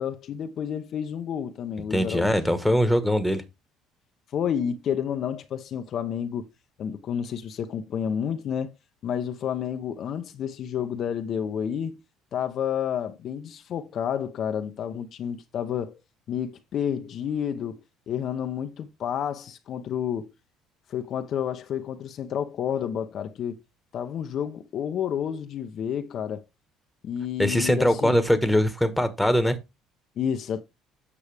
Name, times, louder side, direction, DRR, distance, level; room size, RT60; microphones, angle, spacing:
voice 1, 0.0-2.4 4.3-6.5 6.8-8.7 9.0-12.0 12.3-16.0 16.3-17.8 18.1-20.3 20.9-23.6 23.9-26.4 27.0-28.2 30.2-30.6, left 8 dB, 55° left, 0.8 m, -30 dB
voice 2, 1.9-3.4 27.4-29.6, equal, ahead, 1.4 m, -22 dB
8.3 x 6.2 x 3.4 m
cardioid pair, 100°, 0 cm